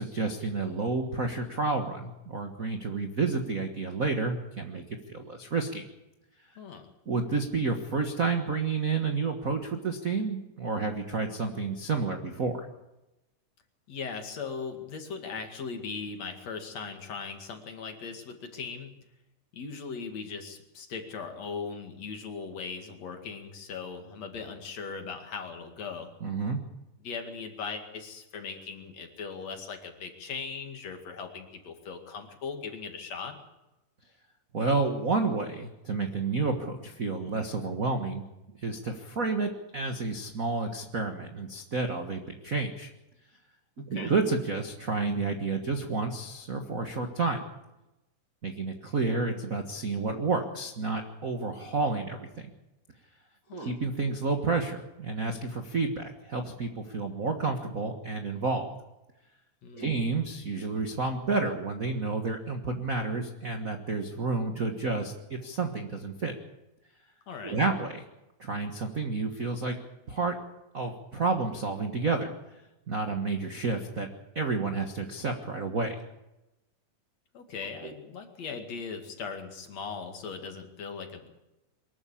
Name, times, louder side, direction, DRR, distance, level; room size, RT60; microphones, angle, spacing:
voice 1, 0.0-4.8 5.1-5.8 7.1-12.7 26.2-26.6 34.5-38.2 38.6-42.9 43.9-47.4 48.4-52.5 53.5-58.7 59.7-66.3 67.4-68.0 68.4-69.7 70.1-70.3 70.7-72.3 72.9-74.1 74.3-75.9, right 3 dB, 50° right, 5 dB, 0.9 m, -30 dB
voice 2, 6.6-6.9 13.9-18.9 19.5-26.1 27.0-33.4 43.8-44.2 53.5-53.7 59.6-59.9 67.3-67.6 77.3-81.3, left 5 dB, 55° left, 5 dB, 3.3 m, -39 dB
23.5 x 13.5 x 8.6 m, 0.97 s
omnidirectional pair, 3.9 m